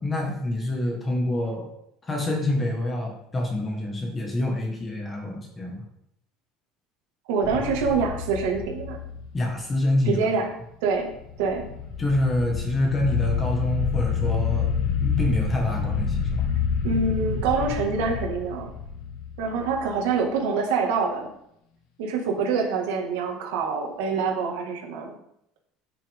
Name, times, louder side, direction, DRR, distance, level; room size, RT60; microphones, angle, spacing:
voice 1, 0.0-1.7 2.0-5.8 9.3-10.2 12.0-16.5, left 1 dB, 15° left, 1 dB, 1.5 m, -26 dB
voice 2, 7.3-9.0 10.1-10.5 10.8-11.1 11.4-11.7 16.8-18.7 19.4-21.3 22.0-25.1, right 5 dB, 80° right, 1 dB, 1.9 m, -25 dB
sound 1, 7.4-9.7 11.1-20.0, left 6 dB, 70° left, 1.6 m, -28 dB
10.0 x 6.0 x 3.7 m, 0.77 s
cardioid pair, 175°, 0 cm